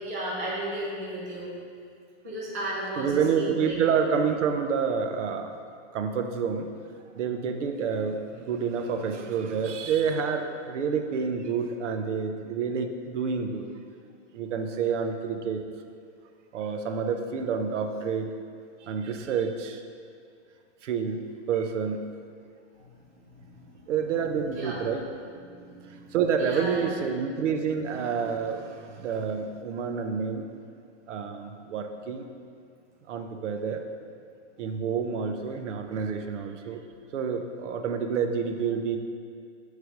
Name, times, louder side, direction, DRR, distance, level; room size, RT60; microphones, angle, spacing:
voice 1, 0.0-1.5 2.2-3.8 22.8-23.0 23.3-23.9 24.4-24.8 25.4-26.9, right 1 dB, 15° right, -7 dB, 0.3 m, -35 dB
voice 2, 3.0-5.6 5.9-6.7 7.1-13.7 14.3-15.6 16.5-18.3 18.8-19.8 20.8-21.2 21.5-22.0 23.9-25.1 26.1-30.4 31.1-32.2 33.1-33.8 34.6-36.8 37.1-39.0, right 6 dB, 70° right, 6 dB, 0.6 m, -28 dB
6.7 x 3.2 x 4.9 m, 2.2 s
hypercardioid pair, 160°, 37 cm